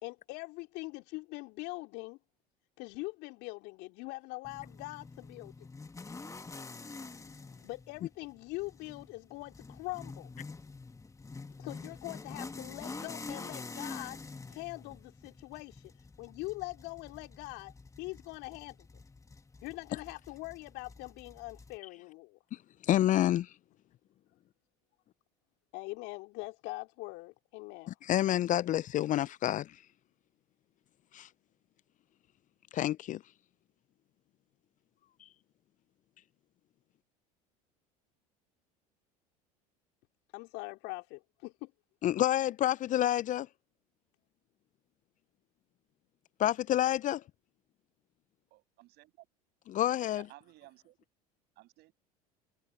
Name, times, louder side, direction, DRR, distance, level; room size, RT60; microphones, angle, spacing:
voice 1, 0.0-2.2 2.8-5.5 7.6-10.3 11.6-14.2 14.5-15.9 16.2-18.8 19.6-22.4 25.7-27.9 40.3-41.7, left 23 dB, 60° left, 2.8 m, -42 dB
sound 1, 4.4-21.8, left 3 dB, 15° left, 2.0 m, -47 dB
voice 2, 22.9-23.5 27.9-29.8 31.1-31.3 32.7-33.2 42.0-43.5 46.4-47.2 49.7-50.3, left 12 dB, 40° left, 0.6 m, -28 dB
voice 3, 48.5-49.3 50.1-51.0 51.6-51.9, right 18 dB, 60° right, 7.3 m, -56 dB
hypercardioid pair, 70°, 19 cm